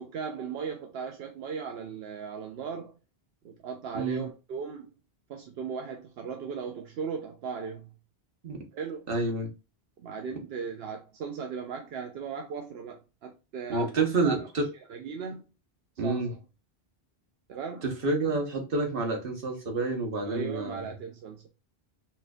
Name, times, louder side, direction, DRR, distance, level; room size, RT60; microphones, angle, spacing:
voice 1, 0.0-2.9 3.4-4.9 5.3-7.9 8.7-9.1 10.0-14.5 14.9-15.4 16.0-16.4 17.5-17.9 20.2-21.5, right 6 dB, 80° right, 0.8 m, -37 dB
voice 2, 9.1-9.5 13.7-14.7 16.0-16.3 17.8-20.9, right 3 dB, 60° right, 1.2 m, -28 dB
4.3 x 2.5 x 2.2 m
omnidirectional pair, 1.0 m